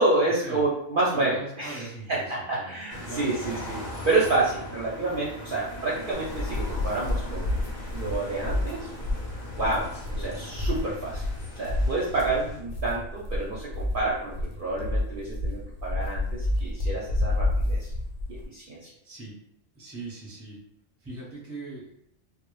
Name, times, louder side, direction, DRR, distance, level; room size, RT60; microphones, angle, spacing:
voice 1, 0.0-3.8 4.0-7.6 7.9-8.9 9.6-9.9 10.2-11.2 11.6-17.9 18.3-18.9, right 2 dB, 60° right, -6 dB, 0.6 m, -28 dB
voice 2, 1.1-2.8 3.0-3.6 4.6-4.7 10.1-10.3 19.0-19.3 19.7-20.6 21.0-21.9, right 3 dB, 15° right, -4 dB, 0.5 m, -40 dB
sound 1, 2.9-12.6, left 1 dB, 50° left, 0.5 m, -40 dB
sound 2, 6.1-18.5, left 2 dB, 90° left, 0.9 m, -30 dB
2.0 x 2.0 x 3.0 m, 0.73 s
omnidirectional pair, 1.2 m